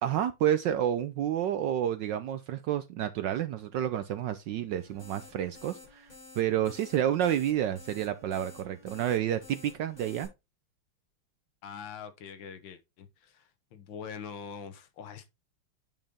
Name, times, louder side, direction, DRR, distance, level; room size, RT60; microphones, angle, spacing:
voice 1, 0.0-10.3, right 10 dB, 75° right, 1.0 m, -30 dB
sound 1, 4.7-10.3, left 2 dB, 40° left, 5.5 m, -52 dB
voice 2, 11.6-15.3, left 6 dB, 65° left, 1.5 m, -44 dB
9.2 x 5.3 x 3.6 m
omnidirectional pair, 2.4 m